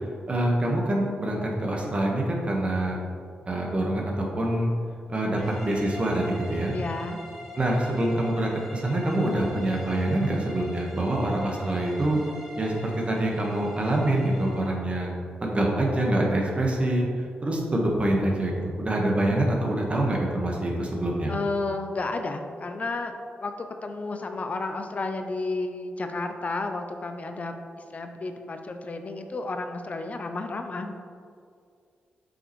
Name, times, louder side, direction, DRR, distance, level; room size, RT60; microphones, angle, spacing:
voice 1, 0.3-3.0 3.5-4.7 5.1-6.7 7.6-12.2 12.6-15.1 15.4-17.1 17.4-21.3, right 1 dB, 35° right, -1 dB, 1.2 m, -25 dB
sound 1, 5.4-14.8, equal, ahead, 1.3 m, -43 dB
voice 2, 6.7-7.2 21.3-23.1 23.4-30.9, left 3 dB, 40° left, 6 dB, 0.4 m, -32 dB
7.5 x 5.1 x 3.1 m, 2.3 s
cardioid pair, 80°, 4 cm